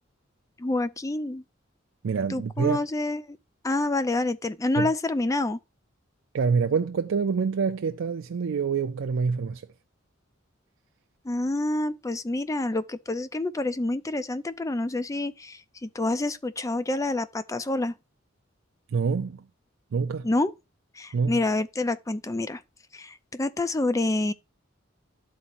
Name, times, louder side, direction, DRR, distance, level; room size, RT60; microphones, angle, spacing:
voice 1, 0.6-1.4 2.3-3.4 3.6-5.6 11.2-17.9 20.2-20.5 21.0-22.6 22.9-24.3, left 2 dB, 15° left, 0.4 m, -27 dB
voice 2, 2.0-2.8 4.8-4.9 6.3-9.7 18.9-19.5 19.9-20.3 21.1-21.4, right 5 dB, 75° right, 0.4 m, -26 dB
12.0 x 4.1 x 2.5 m
head